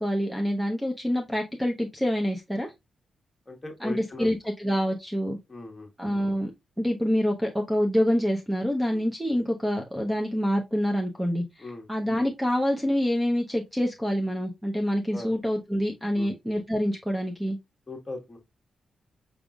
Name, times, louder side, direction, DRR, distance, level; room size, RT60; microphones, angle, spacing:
voice 1, 0.0-2.7 3.8-5.4 6.0-6.5 6.8-17.6, equal, 5° right, 0.7 m, -26 dB
voice 2, 3.5-4.3 5.5-5.9 8.9-9.0 11.6-11.9 15.1-15.3 16.1-16.3 17.9-18.4, left 2 dB, 25° left, 1.3 m, -39 dB
5.1 x 3.5 x 2.3 m
cardioid pair, 90°, 0 cm